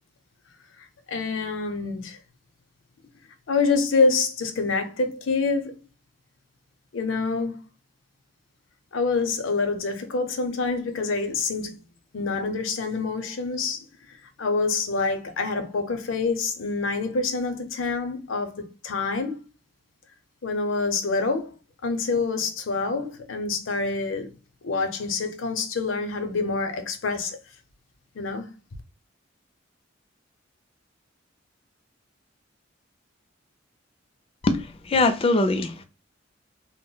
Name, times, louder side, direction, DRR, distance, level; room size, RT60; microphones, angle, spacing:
voice 1, 1.1-2.2 3.5-5.8 6.9-7.6 8.9-11.7 12.1-19.4 20.4-21.5 21.8-24.3 24.6-27.4 28.1-28.5, left 4 dB, 80° left, 0.6 m, -26 dB
voice 2, 34.4-35.8, left 2 dB, 30° left, 0.3 m, -22 dB
2.2 x 2.0 x 3.8 m
head